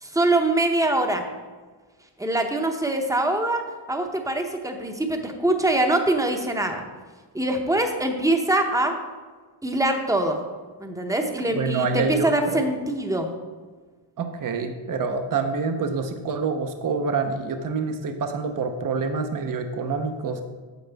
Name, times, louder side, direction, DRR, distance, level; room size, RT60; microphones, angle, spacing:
voice 1, 0.0-1.2 2.2-6.8 7.3-8.9 9.6-10.4 10.8-13.3, right 1 dB, 5° right, 4 dB, 0.8 m, -23 dB
voice 2, 11.5-12.6 14.2-20.4, right 4 dB, 40° right, 6 dB, 0.7 m, -27 dB
9.2 x 7.8 x 3.4 m, 1.4 s
wide cardioid pair, 140°, 49 cm